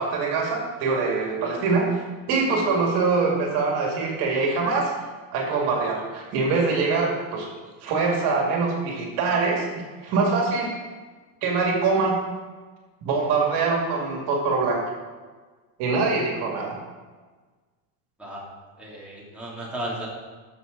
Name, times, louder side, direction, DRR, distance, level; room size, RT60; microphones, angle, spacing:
voice 1, 0.0-2.0 2.3-4.9 5.3-7.5 7.8-9.7 10.0-10.8 11.4-12.2 13.0-14.8 15.8-16.8, right 4 dB, 60° right, 0 dB, 2.4 m, -23 dB
voice 2, 18.8-20.1, right 1 dB, 5° right, -7 dB, 2.9 m, -34 dB
13.0 x 6.3 x 4.0 m, 1.4 s
supercardioid pair, 125°, 44 cm